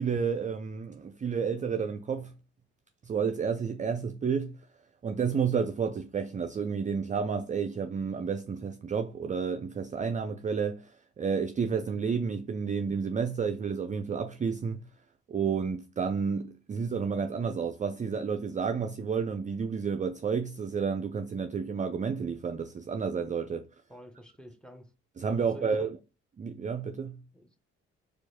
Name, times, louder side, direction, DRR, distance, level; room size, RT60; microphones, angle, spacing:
voice 1, 0.0-2.3 3.0-4.6 5.0-14.8 15.3-23.7 25.2-26.0 26.4-27.2, right 6 dB, 25° right, 0.4 m, -31 dB
voice 2, 23.9-24.9 25.4-25.9 27.3-27.6, equal, 5° left, 0.9 m, -49 dB
4.5 x 2.5 x 4.2 m
hypercardioid pair, 40°, 32 cm